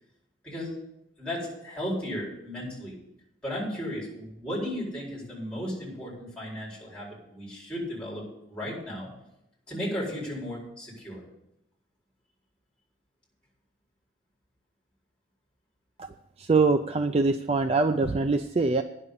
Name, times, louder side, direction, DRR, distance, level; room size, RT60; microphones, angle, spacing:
voice 1, 0.4-0.7 1.2-2.9 3.4-9.1 9.7-11.2, equal, 5° left, -5 dB, 4.5 m, -35 dB
voice 2, 16.4-18.8, right 3 dB, 30° right, 8 dB, 0.3 m, -23 dB
10.0 x 6.6 x 8.3 m, 0.83 s
head